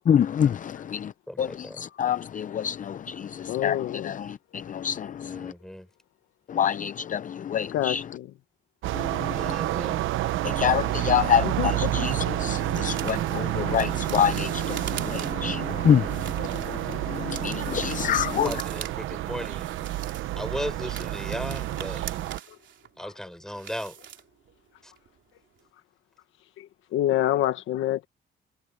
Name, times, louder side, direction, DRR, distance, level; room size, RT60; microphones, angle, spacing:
voice 1, 0.1-1.1 1.4-3.8 4.0-5.5 6.5-8.0 8.9-9.5 10.4-18.5, left 8 dB, 40° left, 0.5 m, -27 dB
voice 2, 1.3-1.8 5.2-5.9 9.3-10.0 18.3-19.7 20.4-22.0 23.0-24.0 24.8-24.9, equal, 5° left, 6.9 m, -36 dB
voice 3, 1.8-2.1 3.5-4.2 4.5-4.7 7.7-8.3 11.4-11.9 15.3-15.8 17.5-17.9 22.5-22.6 23.0-23.1 26.6-28.1, left 13 dB, 90° left, 1.5 m, -29 dB
sound 1, 8.8-22.4, right 15 dB, 85° right, 0.9 m, -29 dB
sound 2, 12.0-15.6 16.0-18.9 19.2-20.4 20.7-24.7 25.0-25.2 25.6-25.7, right 10 dB, 70° right, 3.3 m, -42 dB
cardioid pair, 90°, 20 cm